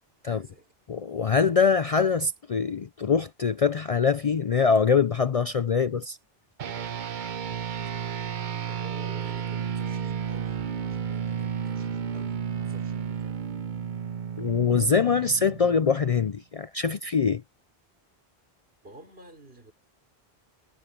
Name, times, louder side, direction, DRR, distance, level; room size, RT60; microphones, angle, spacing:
voice 1, 0.2-0.7 8.6-13.4 18.8-19.7, right 1 dB, 70° right, 5.0 m, -50 dB
voice 2, 0.9-6.2 14.4-17.4, left 5 dB, 45° left, 0.5 m, -23 dB
sound 1, 6.6-16.3, right 7 dB, 55° right, 0.8 m, -32 dB
omnidirectional pair, 1.0 m